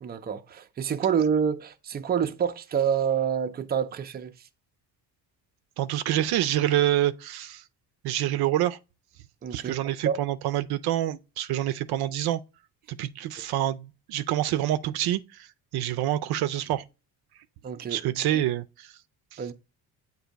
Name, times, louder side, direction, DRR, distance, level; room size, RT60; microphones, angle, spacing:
voice 1, 0.0-4.3 9.4-9.7 10.1-10.2 13.3-13.4 17.6-18.4 19.4-19.5, right 7 dB, 25° right, 0.5 m, -27 dB
voice 2, 5.8-7.6 8.0-8.8 9.5-12.4 12.9-15.5 15.7-16.9 17.9-18.9 19.3-19.4, right 13 dB, 70° right, 0.5 m, -27 dB
7.9 x 2.7 x 5.0 m
cardioid pair, 115°, 38 cm